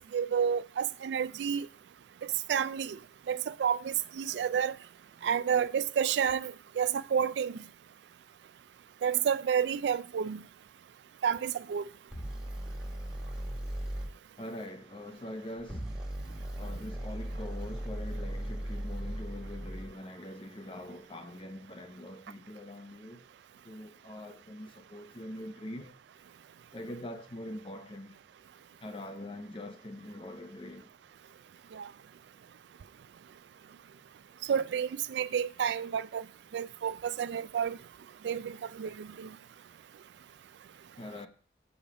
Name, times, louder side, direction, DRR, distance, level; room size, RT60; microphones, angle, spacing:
voice 1, 0.1-1.7 2.5-3.0 3.3-4.7 5.2-7.6 9.0-10.4 11.2-11.8 31.7-31.9 34.5-36.2 36.5-37.8 38.2-39.3, right 7 dB, 80° right, 0.3 m, -30 dB
sound 1, 12.1-14.1 15.6-19.9, right 1 dB, 5° right, 1.1 m, -37 dB
voice 2, 14.4-16.0 16.6-23.2 23.6-26.0 26.7-28.2 28.8-30.9 41.0-41.3, left 1 dB, 30° left, 0.7 m, -43 dB
6.9 x 5.0 x 4.9 m
head